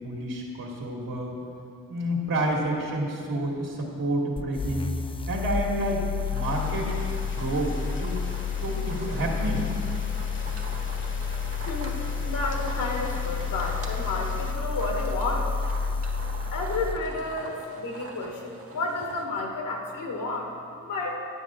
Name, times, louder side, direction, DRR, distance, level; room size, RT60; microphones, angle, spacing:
voice 1, 0.0-1.4 1.9-4.9 5.3-6.1 6.3-6.9 7.3-8.3 8.6-9.7, right 1 dB, 70° right, -3 dB, 2.0 m, -29 dB
Bass Milk Frother, 4.4-17.0, left 5 dB, 15° left, 0.3 m, -30 dB
sound 1, 6.2-19.3, right 3 dB, 40° right, 1.2 m, -45 dB
sound 2, 6.4-14.5, left 2 dB, 35° left, 1.0 m, -43 dB
voice 2, 12.2-15.4 16.5-20.5 20.9-21.2, left 3 dB, 70° left, 1 dB, 1.5 m, -31 dB
9.6 x 8.0 x 3.7 m, 2.4 s
supercardioid pair, 55°, 34 cm